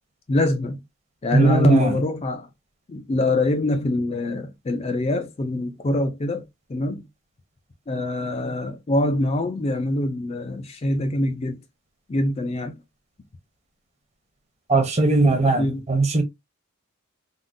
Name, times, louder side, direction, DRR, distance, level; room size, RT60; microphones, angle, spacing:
voice 1, 0.3-0.8 1.2-2.5 2.9-6.4 6.7-7.0 7.9-11.6 12.1-12.8 15.6-15.9, left 1 dB, 30° left, 0.3 m, -24 dB
voice 2, 1.3-1.9 14.7-16.2, right 3 dB, 30° right, 0.7 m, -19 dB
3.6 x 2.0 x 2.5 m
head